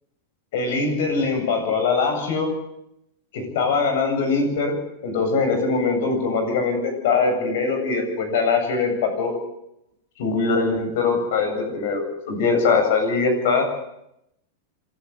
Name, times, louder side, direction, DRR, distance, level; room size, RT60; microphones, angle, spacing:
voice 1, 0.5-2.5 3.3-4.8 5.0-9.3 10.2-13.7, left 4 dB, 55° left, 5 dB, 7.8 m, -22 dB
27.5 x 13.0 x 8.1 m, 0.81 s
supercardioid pair, 170°, 0 cm